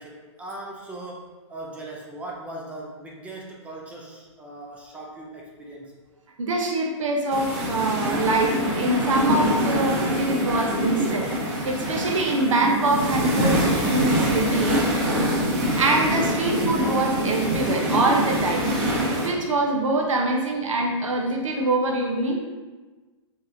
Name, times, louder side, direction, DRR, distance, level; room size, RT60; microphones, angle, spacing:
voice 1, 0.0-6.0, right 2 dB, 10° right, -2 dB, 0.4 m, -39 dB
voice 2, 6.4-11.3 11.6-14.8 15.7-18.7 19.1-22.4, right 2 dB, 85° right, 1 dB, 0.9 m, -24 dB
sound 1, 7.3-19.3, equal, 35° right, 1.0 m, -24 dB
5.0 x 3.7 x 2.7 m, 1.3 s
hypercardioid pair, 145°, 16 cm